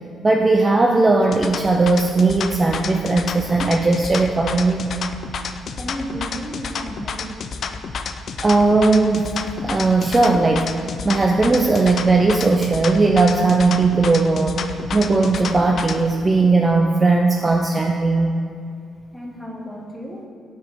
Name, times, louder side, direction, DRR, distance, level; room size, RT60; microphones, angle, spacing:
voice 1, 0.2-4.9 8.4-18.3, right 3 dB, 25° right, 2 dB, 0.3 m, -18 dB
sound 1, 1.2-16.0, left 5 dB, 55° left, 0.3 m, -30 dB
voice 2, 5.8-7.4 19.1-20.3, equal, ahead, 0 dB, 0.9 m, -33 dB
4.8 x 3.8 x 5.6 m, 2.4 s
cardioid pair, 90°, 0 cm